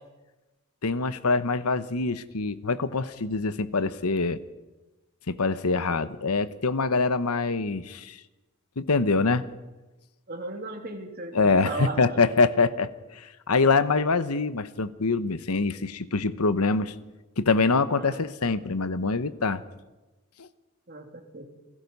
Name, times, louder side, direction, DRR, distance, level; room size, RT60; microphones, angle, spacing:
voice 1, 0.8-4.4 5.3-8.2 8.8-9.4 11.3-16.9 17.4-19.6 20.4-20.5, left 4 dB, 90° left, 13 dB, 1.0 m, -25 dB
voice 2, 10.3-12.2 18.0-18.2 20.9-21.4, right 2 dB, 45° right, 3 dB, 3.0 m, -36 dB
28.0 x 18.0 x 5.5 m, 1.1 s
head